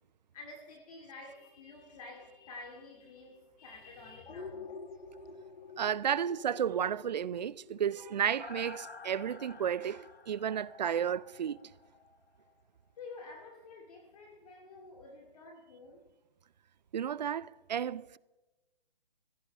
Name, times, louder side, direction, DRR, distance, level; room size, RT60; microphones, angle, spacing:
voice 1, 0.3-4.8 13.0-16.0, left 3 dB, 40° left, 2.4 m, -50 dB
sound 1, 4.3-12.1 12.5-12.6, left 4 dB, 80° left, 1.3 m, -49 dB
voice 2, 5.8-11.6 16.9-18.2, right 8 dB, 45° right, 0.5 m, -32 dB
23.5 x 16.0 x 3.5 m
hypercardioid pair, 150°, 30 cm